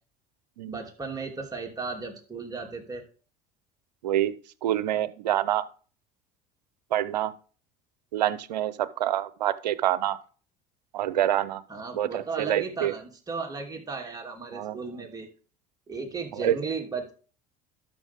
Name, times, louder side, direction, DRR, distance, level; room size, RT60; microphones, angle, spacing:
voice 1, 0.6-3.0 11.7-15.3 15.9-17.1, right 4 dB, 15° right, 1 dB, 2.6 m, -35 dB
voice 2, 4.0-4.3 4.6-5.7 6.9-7.3 8.1-10.2 10.9-11.6 11.9-12.9 14.5-14.8 16.4-16.6, right 12 dB, 85° right, 16 dB, 0.6 m, -26 dB
12.5 x 5.4 x 3.6 m, 0.39 s
hypercardioid pair, 75°, 21 cm